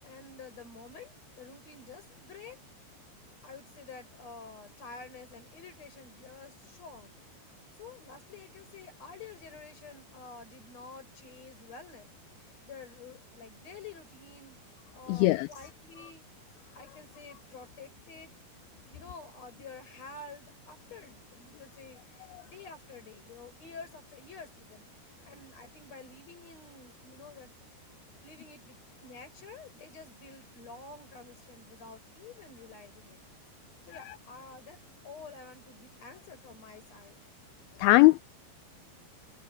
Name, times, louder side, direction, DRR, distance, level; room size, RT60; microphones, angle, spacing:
voice 1, 0.0-2.6 3.4-7.1 7.7-12.1 12.4-14.6 14.9-16.2 16.7-18.4 18.9-27.5 28.2-33.2 33.8-37.2, left 4 dB, 35° left, 6.8 m, -49 dB
voice 2, 15.1-15.5 37.8-38.2, left 20 dB, 85° left, 2.2 m, -20 dB
omnidirectional pair, 5.0 m